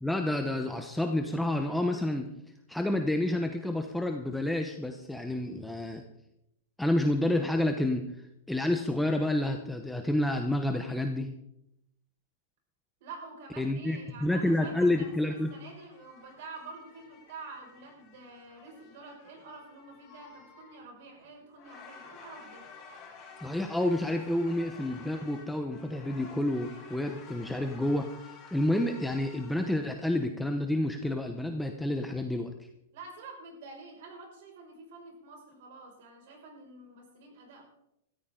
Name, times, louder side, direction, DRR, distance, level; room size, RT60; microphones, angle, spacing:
voice 1, 0.0-2.3 2.7-6.0 6.8-8.0 8.5-11.3 13.6-15.5 23.4-32.5, left 1 dB, ahead, 4 dB, 0.9 m, -29 dB
voice 2, 13.0-22.6 32.9-37.6, right 3 dB, 55° right, 1 dB, 6.1 m, -48 dB
sound 1, 14.4-29.9, left 5 dB, 25° left, 5.5 m, -52 dB
17.0 x 14.0 x 3.9 m, 0.82 s
hypercardioid pair, 155°, 0 cm